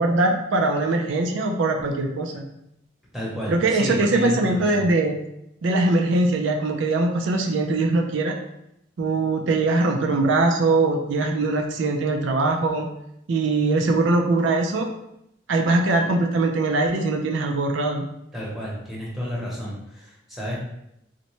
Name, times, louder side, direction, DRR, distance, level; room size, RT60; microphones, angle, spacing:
voice 1, 0.0-2.4 3.5-5.2 5.6-8.3 9.0-12.9 13.3-14.9 15.5-18.1, right 2 dB, 75° right, 2 dB, 0.4 m, -21 dB
voice 2, 3.1-4.9 18.3-20.5, equal, ahead, -6 dB, 0.9 m, -31 dB
3.9 x 2.1 x 3.0 m, 0.80 s
head